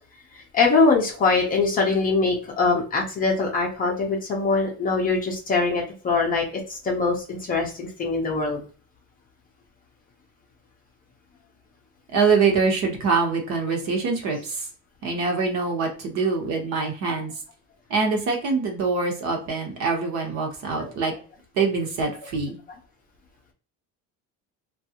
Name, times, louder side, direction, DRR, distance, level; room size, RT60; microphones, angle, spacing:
voice 1, 0.5-8.6 20.7-20.9, left 3 dB, 25° left, -1 dB, 0.5 m, -23 dB
voice 2, 12.1-14.7 15.0-17.3 17.9-21.1 21.5-22.6, right 4 dB, 50° right, 2 dB, 1.0 m, -24 dB
3.1 x 2.3 x 2.8 m, 0.40 s
cardioid pair, 180°, 35 cm